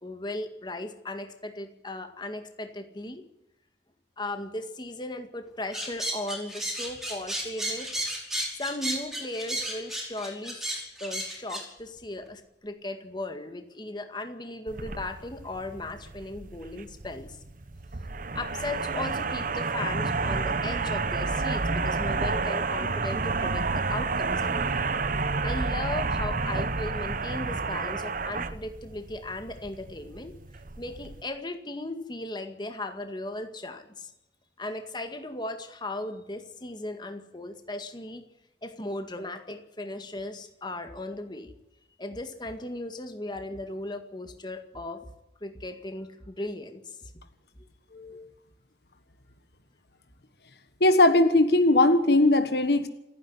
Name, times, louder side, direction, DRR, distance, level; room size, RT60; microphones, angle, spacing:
voice 1, 0.0-3.2 4.2-8.1 8.6-17.4 18.3-24.9 25.4-30.3 30.8-34.1 34.6-38.2 38.6-41.5 42.0-45.1 45.4-47.1 48.1-48.2, left 2 dB, 25° left, 7 dB, 2.0 m, -37 dB
sound 1, 5.7-11.6, right 1 dB, ahead, 5.0 m, -33 dB
sound 2, 14.7-31.2, right 4 dB, 50° right, 1.0 m, -30 dB
voice 2, 50.8-52.9, left 2 dB, 65° left, 10 dB, 1.4 m, -20 dB
28.0 x 10.0 x 9.7 m, 0.88 s
head